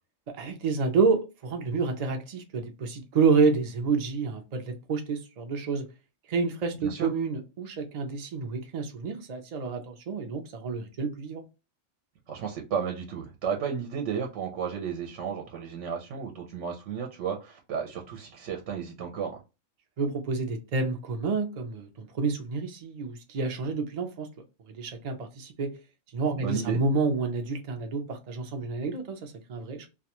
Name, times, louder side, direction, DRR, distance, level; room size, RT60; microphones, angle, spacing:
voice 1, 0.3-5.9 6.3-11.4 20.0-24.3 24.7-25.7 26.1-29.9, right 4 dB, 55° right, 0.4 m, -29 dB
voice 2, 12.3-19.4 26.4-26.8, right 7 dB, 75° right, 0.9 m, -33 dB
2.4 x 2.2 x 2.9 m
omnidirectional pair, 1.3 m